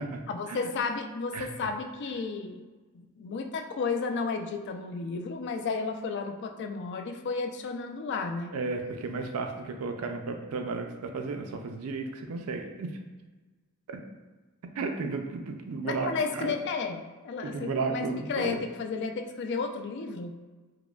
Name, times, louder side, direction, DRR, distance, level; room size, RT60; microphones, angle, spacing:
voice 1, 0.3-2.7 2.9-8.5 15.8-20.3, left 4 dB, 50° left, 5 dB, 0.3 m, -33 dB
voice 2, 8.5-12.9 13.9-14.0 14.6-16.5 17.4-18.6, right 4 dB, 80° right, 5 dB, 0.4 m, -34 dB
4.7 x 2.1 x 2.3 m, 1.3 s
head